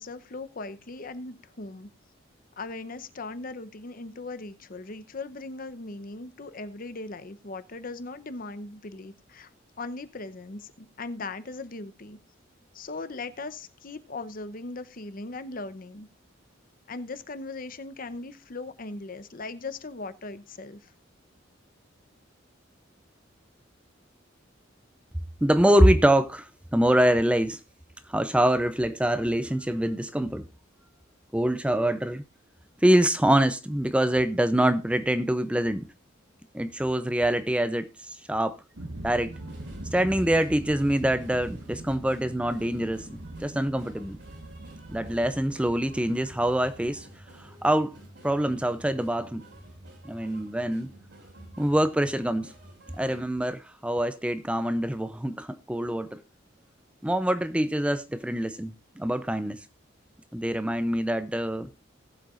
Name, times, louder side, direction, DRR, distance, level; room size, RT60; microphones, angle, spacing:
voice 1, 0.0-1.9 2.6-9.5 9.8-12.2 12.7-16.1 16.9-20.9, left 3 dB, 45° left, 0.8 m, -39 dB
voice 2, 25.4-27.6 28.1-30.4 31.3-32.2 32.8-35.9 36.5-38.6 39.0-39.3 39.9-44.2 44.9-47.1 47.4-47.9 48.2-49.4 50.0-50.9 51.6-52.5 53.0-56.2 57.0-59.6 60.3-61.7, right 1 dB, 5° right, 0.5 m, -25 dB
sound 1, 38.8-48.1, right 1 dB, 85° right, 1.5 m, -42 dB
sound 2, 39.3-53.3, right 1 dB, 60° right, 3.4 m, -51 dB
19.0 x 7.7 x 2.5 m
head